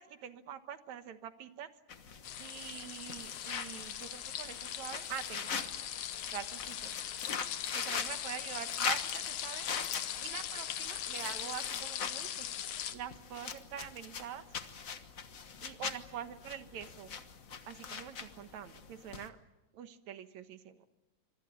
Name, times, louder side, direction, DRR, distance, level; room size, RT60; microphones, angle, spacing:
voice 1, 0.0-1.7 2.4-5.9 6.3-6.9 7.7-10.0 10.2-12.5 12.9-14.5 15.6-17.2 17.7-19.4 19.7-20.8, right 9 dB, 70° right, 10 dB, 2.5 m, -45 dB
sound 1, 1.9-19.3, left 6 dB, 55° left, 0.9 m, -42 dB
sound 2, 2.2-13.0, left 10 dB, 75° left, 2.6 m, -40 dB
26.5 x 23.0 x 8.3 m, 1.0 s
omnidirectional pair, 3.5 m